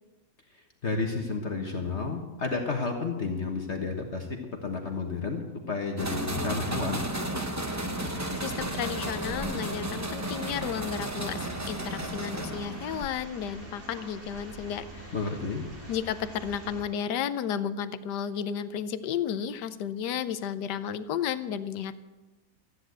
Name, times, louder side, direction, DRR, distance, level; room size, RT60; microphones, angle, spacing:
voice 1, 0.8-4.3 4.6-7.0 15.1-15.6, left 4 dB, 45° left, 3 dB, 1.5 m, -31 dB
sound 1, 6.0-13.1, right 1 dB, 15° right, 0.7 m, -33 dB
sound 2, 7.6-16.8, equal, 40° right, 3.1 m, -44 dB
voice 2, 8.4-15.1 15.9-22.0, left 8 dB, 80° left, 12 dB, 1.3 m, -33 dB
14.0 x 9.9 x 7.8 m, 1.1 s
omnidirectional pair, 1.8 m